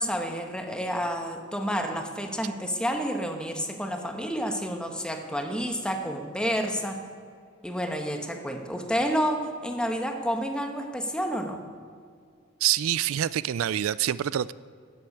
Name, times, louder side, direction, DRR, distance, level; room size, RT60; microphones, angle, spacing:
voice 1, 0.0-7.0 7.6-11.6, equal, 5° left, 4 dB, 1.2 m, -29 dB
voice 2, 12.6-14.5, right 11 dB, 90° right, 18 dB, 0.4 m, -26 dB
13.0 x 7.9 x 8.7 m, 2.2 s
head